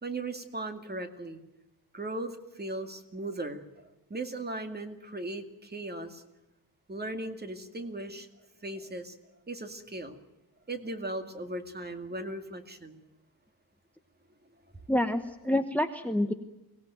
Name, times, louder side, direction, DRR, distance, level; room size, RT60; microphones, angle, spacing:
voice 1, 0.0-1.4 1.9-3.6 4.1-6.2 6.9-8.3 8.6-9.2 9.5-10.2 10.7-13.0, right 2 dB, 25° right, 6 dB, 2.3 m, -37 dB
voice 2, 14.9-16.3, left 1 dB, 5° left, 8 dB, 1.1 m, -27 dB
23.5 x 18.0 x 9.1 m, 0.99 s
wide cardioid pair, 135°, 39 cm